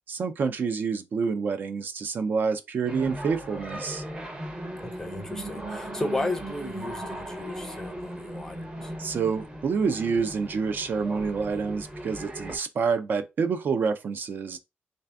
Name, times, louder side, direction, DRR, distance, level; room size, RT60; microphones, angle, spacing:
voice 1, 0.1-4.0 9.0-14.6, right 5 dB, 50° right, 0.4 m, -28 dB
sound 1, 2.8-12.6, right 1 dB, 25° right, 0.7 m, -38 dB
voice 2, 4.8-8.9, left 2 dB, 10° left, 0.5 m, -34 dB
3.3 x 2.6 x 3.4 m
wide cardioid pair, 165°, 4 cm